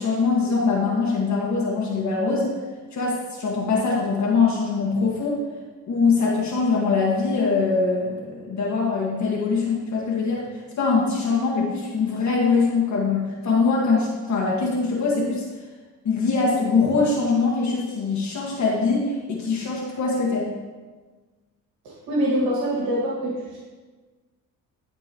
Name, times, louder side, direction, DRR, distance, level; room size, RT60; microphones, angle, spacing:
voice 1, 0.0-2.5 2.9-5.4 5.9-10.4 10.8-15.5 16.0-20.5, left 4 dB, 50° left, -4 dB, 1.8 m, -22 dB
voice 2, 21.8-23.3, equal, 85° right, -5 dB, 2.1 m, -24 dB
12.0 x 4.5 x 3.0 m, 1.3 s
cardioid pair, 95°, 35 cm